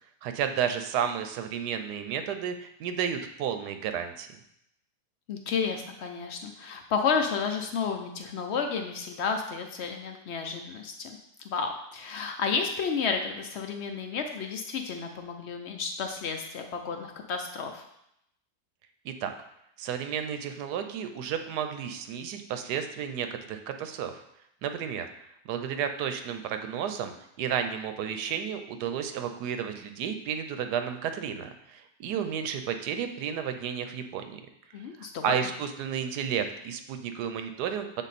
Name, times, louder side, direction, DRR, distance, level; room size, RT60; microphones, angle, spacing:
voice 1, 0.2-4.3 19.0-19.3 19.8-24.2 24.6-25.1 25.4-34.4 35.0-38.0, right 8 dB, 80° right, 7 dB, 1.2 m, -32 dB
voice 2, 5.3-11.2 11.4-17.8 34.7-35.2, left 5 dB, 75° left, 5 dB, 0.6 m, -31 dB
7.2 x 3.9 x 4.1 m, 0.78 s
omnidirectional pair, 1.8 m